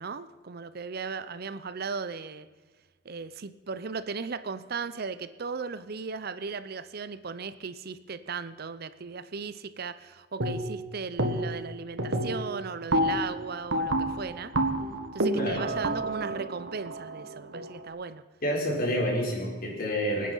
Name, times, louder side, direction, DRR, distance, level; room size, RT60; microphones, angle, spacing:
voice 1, 0.0-2.5 3.0-14.5 15.1-18.2, right 5 dB, 55° right, 13 dB, 0.7 m, -36 dB
sound 1, 10.4-10.9 11.2-11.7 12.0-17.8, right 1 dB, 80° right, 1.7 m, -29 dB
voice 2, 15.3-15.7 18.4-20.3, equal, 55° left, -2 dB, 4.6 m, -28 dB
25.0 x 9.5 x 5.5 m, 1.3 s
head